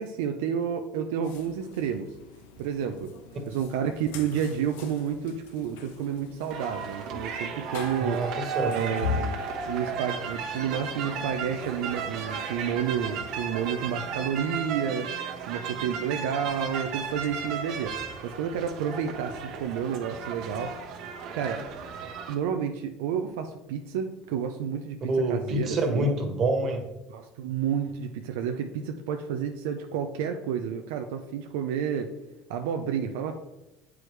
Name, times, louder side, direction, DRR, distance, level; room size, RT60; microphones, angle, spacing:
voice 1, 0.0-2.1 2.6-3.1 3.5-8.2 8.6-15.1 15.5-20.7 21.3-21.6 22.3-25.0 25.3-26.1 27.1-32.1 32.5-33.4, right 8 dB, 80° right, 5 dB, 0.5 m, -30 dB
sound 1, 1.2-14.6, left 7 dB, 85° left, 0.7 m, -42 dB
sound 2, 6.5-22.3, right 6 dB, 60° right, 1.1 m, -35 dB
voice 2, 8.0-8.7 25.1-26.8, right 2 dB, 40° right, 3 dB, 1.5 m, -26 dB
7.7 x 4.8 x 3.2 m, 0.95 s
supercardioid pair, 105°, 0 cm